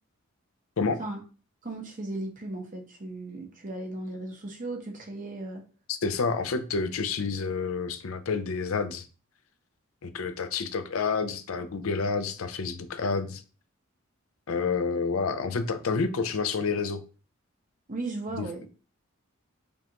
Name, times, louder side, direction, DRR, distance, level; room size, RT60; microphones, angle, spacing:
voice 1, 1.6-5.7 17.9-18.7, right 2 dB, 40° right, 0.9 m, -36 dB
voice 2, 5.9-9.1 10.0-13.4 14.5-17.0 18.3-18.4, left 4 dB, 70° left, 0.5 m, -29 dB
5.2 x 2.5 x 2.9 m
head